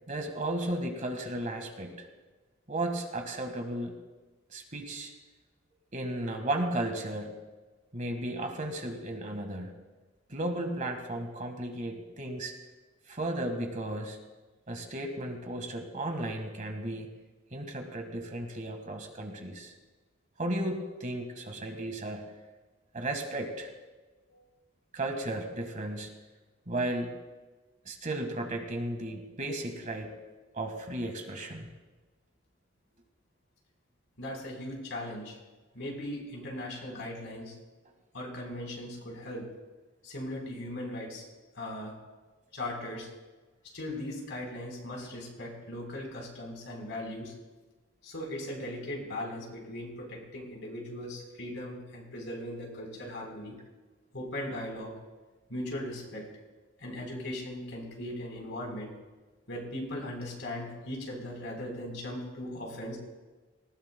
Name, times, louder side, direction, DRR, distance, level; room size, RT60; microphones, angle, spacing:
voice 1, 0.1-2.1 2.7-3.9 4.5-5.1 5.9-7.4 7.9-9.7 10.3-12.5 13.1-14.2 14.7-17.1 17.5-19.7 20.4-22.3 22.9-23.7 24.9-26.1 26.7-27.1 27.8-30.1 30.5-31.7, right 1 dB, 40° right, 4 dB, 1.7 m, -34 dB
voice 2, 34.2-35.4 35.7-37.5 38.1-39.5 40.0-41.2 41.5-42.0 42.5-43.1 43.7-47.3 48.0-53.6 54.1-54.9 55.5-56.3 56.8-58.9 59.5-63.0, left 1 dB, 65° left, 0 dB, 4.1 m, -38 dB
19.0 x 19.0 x 2.3 m, 1.2 s
head